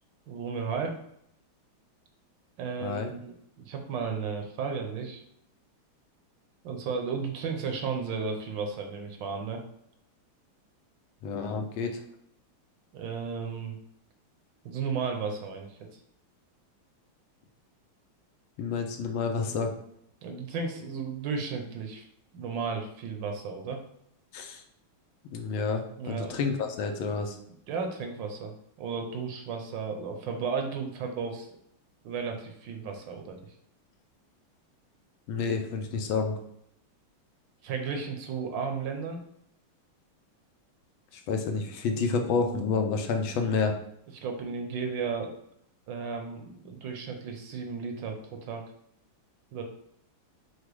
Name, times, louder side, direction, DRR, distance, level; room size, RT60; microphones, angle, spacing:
voice 1, 0.3-1.0 2.6-3.3 3.6-5.2 6.6-9.6 12.9-13.8 14.6-16.0 20.2-22.1 22.3-23.8 26.0-26.4 27.7-31.5 32.0-33.5 37.6-39.2 44.1-45.4 45.9-48.6 49.5-49.6, right 5 dB, 70° right, 4 dB, 1.3 m, -34 dB
voice 2, 11.2-12.0 18.6-19.7 24.3-24.6 25.3-27.4 35.3-36.3 41.1-43.7, left 4 dB, 85° left, 4 dB, 1.4 m, -29 dB
4.9 x 2.1 x 4.6 m, 0.72 s
omnidirectional pair, 2.2 m